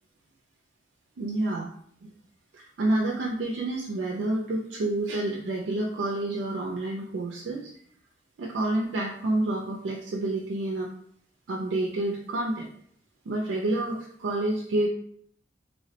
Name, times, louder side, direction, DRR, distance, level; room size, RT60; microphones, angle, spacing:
voice 1, 1.2-1.7 2.0-2.1 2.5-7.7 8.4-10.9 11.5-12.7 13.3-14.9, right 2 dB, 80° right, -1 dB, 0.4 m, -29 dB
3.2 x 2.0 x 2.7 m, 0.63 s
head